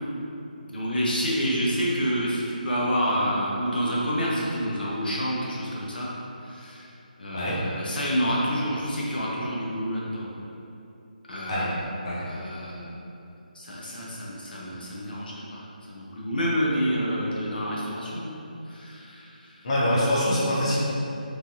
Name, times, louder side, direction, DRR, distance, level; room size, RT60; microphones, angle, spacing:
voice 1, 0.7-6.1 6.4-6.9 7.2-10.3 11.3-11.8 12.3-12.9 13.5-18.3 18.6-19.6, equal, 80° left, -5 dB, 0.6 m, -28 dB
voice 2, 19.6-20.8, left 1 dB, 35° left, -9 dB, 0.7 m, -24 dB
3.2 x 2.3 x 2.6 m, 2.8 s
figure-of-eight pair, 170°, 5 cm